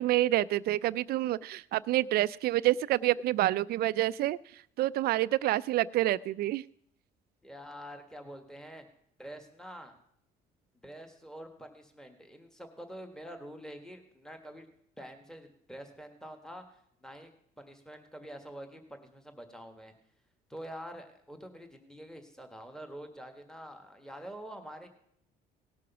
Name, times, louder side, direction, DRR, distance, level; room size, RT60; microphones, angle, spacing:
voice 1, 0.0-4.4 4.8-6.6, right 15 dB, 65° right, 18 dB, 0.4 m, -28 dB
voice 2, 7.4-8.8 9.2-10.0 10.7-14.7 15.0-17.3 17.6-19.9 20.5-24.9, equal, 5° left, 6 dB, 1.5 m, -46 dB
17.5 x 6.1 x 5.9 m, 0.68 s
cardioid pair, 110°, 17 cm